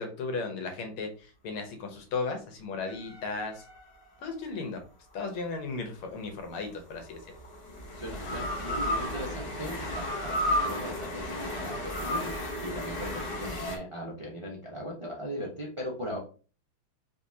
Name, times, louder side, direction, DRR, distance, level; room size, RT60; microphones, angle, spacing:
voice 1, 0.0-3.6 4.2-4.8 5.1-7.2, left 4 dB, 85° left, 5 dB, 1.8 m, -35 dB
sound 1, 2.8-4.4 6.2-13.8, left 1 dB, 65° left, 0.5 m, -34 dB
voice 2, 7.9-16.2, equal, 45° right, -3 dB, 0.4 m, -38 dB
5.2 x 3.0 x 2.7 m, 0.37 s
omnidirectional pair, 2.3 m